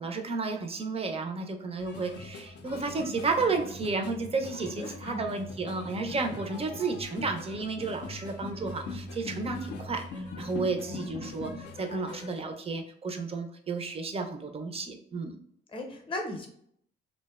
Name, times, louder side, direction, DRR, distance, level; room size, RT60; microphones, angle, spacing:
voice 1, 0.0-15.4, right 3 dB, 30° right, 5 dB, 0.4 m, -32 dB
sound 1, 1.8-12.4, left 3 dB, 65° left, 0.4 m, -41 dB
voice 2, 4.8-5.2 15.7-16.5, left 1 dB, 25° left, 2 dB, 0.6 m, -36 dB
2.6 x 2.1 x 2.3 m, 0.67 s
cardioid pair, 90°, 20 cm